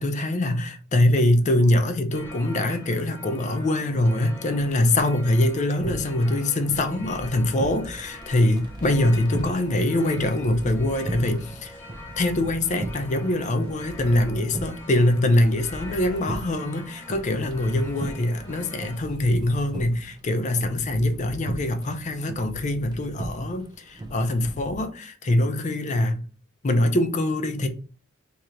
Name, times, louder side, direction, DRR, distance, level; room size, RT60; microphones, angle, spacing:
voice 1, 0.0-11.8 12.2-26.2 26.6-27.7, left 1 dB, 35° left, 0.5 m, -23 dB
sound 1, 2.1-19.0, left 1 dB, 10° left, 0.8 m, -44 dB
sound 2, 5.8-24.8, right 1 dB, 20° right, 0.4 m, -37 dB
2.8 x 2.5 x 4.3 m
head